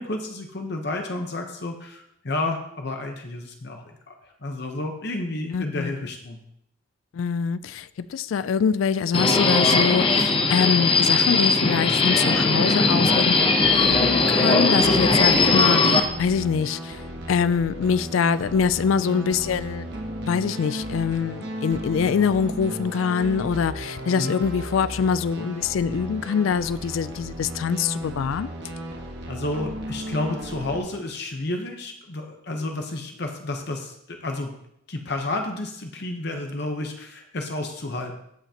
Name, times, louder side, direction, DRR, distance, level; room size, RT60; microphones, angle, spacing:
voice 1, 0.0-6.4 15.0-15.2 24.2-24.3 29.3-34.5 34.9-38.2, left 2 dB, 55° left, 3 dB, 0.9 m, -31 dB
voice 2, 5.5-5.9 7.1-17.0 17.3-19.9 20.2-28.5, left 6 dB, 80° left, 16 dB, 0.3 m, -24 dB
Subway metro underground, 9.1-16.0, left 3 dB, 25° left, 0.7 m, -19 dB
sound 1, 13.3-30.8, right 1 dB, 55° right, 1.4 m, -35 dB
15.0 x 5.8 x 2.9 m, 0.76 s
head